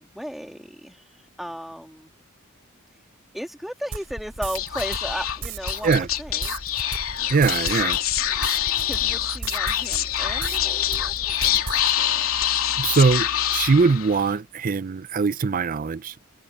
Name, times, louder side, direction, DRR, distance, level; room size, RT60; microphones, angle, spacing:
voice 1, 0.0-2.2 2.9-3.0 3.3-6.8 8.8-12.4, equal, ahead, 2.3 m, -36 dB
sound 1, 3.9-10.6 10.9-11.9, right 3 dB, 75° right, 5.8 m, -35 dB
Speech / Whispering, 4.5-14.3, left 10 dB, 90° left, 3.1 m, -25 dB
voice 2, 7.3-8.0 12.3-12.4 12.8-16.2, right 4 dB, 40° right, 0.5 m, -21 dB
head